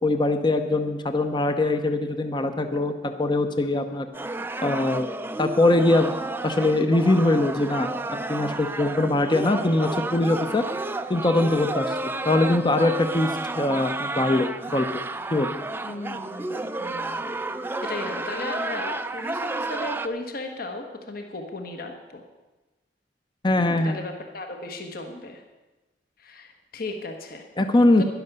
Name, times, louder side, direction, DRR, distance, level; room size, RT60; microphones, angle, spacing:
voice 1, 0.0-4.1 4.6-5.1 5.4-6.2 6.4-10.6 11.1-13.3 13.6-14.9 15.3-15.5 23.4-24.0 27.6-28.0, left 2 dB, 25° left, 8 dB, 0.7 m, -22 dB
sound 1, 4.1-20.1, right 2 dB, 10° right, 0.4 m, -31 dB
voice 2, 15.8-17.3 17.8-22.2 23.6-25.4 26.2-27.4 28.0-28.1, left 2 dB, 55° left, 4 dB, 1.3 m, -36 dB
11.0 x 10.5 x 6.7 m, 1.1 s
head